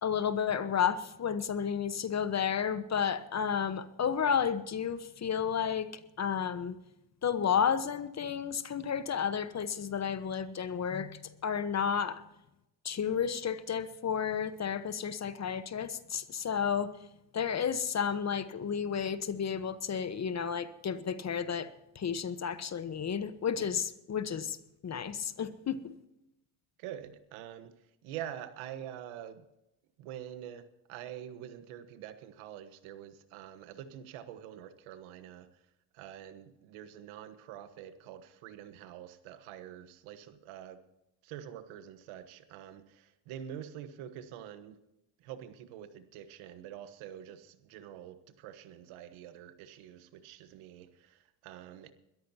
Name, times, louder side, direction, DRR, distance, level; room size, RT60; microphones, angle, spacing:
voice 1, 0.0-5.9 6.2-6.8 7.2-12.2 12.8-17.0 17.3-24.6 24.8-25.9, left 7 dB, 35° left, 13 dB, 1.1 m, -32 dB
voice 2, 26.8-27.7 28.0-29.4 30.0-30.6 30.9-35.5 35.9-40.8 41.2-44.8 45.2-51.9, right 10 dB, 75° right, 11 dB, 1.4 m, -46 dB
21.5 x 14.0 x 2.8 m, 0.88 s
supercardioid pair, 95°, 49 cm